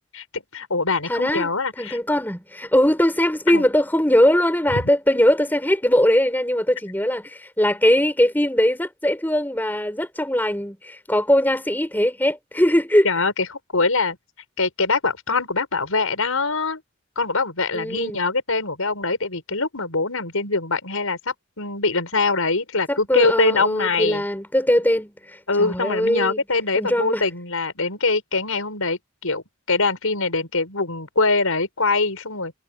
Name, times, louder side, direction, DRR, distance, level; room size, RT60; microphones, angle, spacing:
voice 1, 0.1-2.0 3.5-3.6 4.7-4.8 13.0-13.5 13.7-14.2 14.6-16.8 17.2-24.2 25.5-32.5, left 3 dB, 90° left, 6.2 m, -23 dB
voice 2, 1.1-1.5 1.8-13.1 17.7-18.2 22.9-26.4 26.8-27.3, equal, 10° left, 4.9 m, -20 dB
head